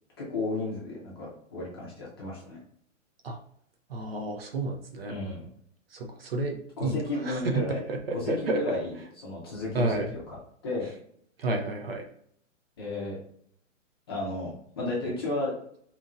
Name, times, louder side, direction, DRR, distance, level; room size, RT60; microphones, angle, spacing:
voice 1, 0.2-2.6 5.1-5.5 6.8-7.9 8.1-10.4 10.6-10.9 12.8-13.2 14.1-15.5, left 2 dB, 20° left, -5 dB, 0.6 m, -33 dB
voice 2, 3.9-5.2 5.9-7.6 7.9-8.6 9.7-10.1 11.4-12.0, right 2 dB, 50° right, 4 dB, 0.5 m, -31 dB
4.2 x 2.8 x 2.5 m, 0.66 s
hypercardioid pair, 170°, 39 cm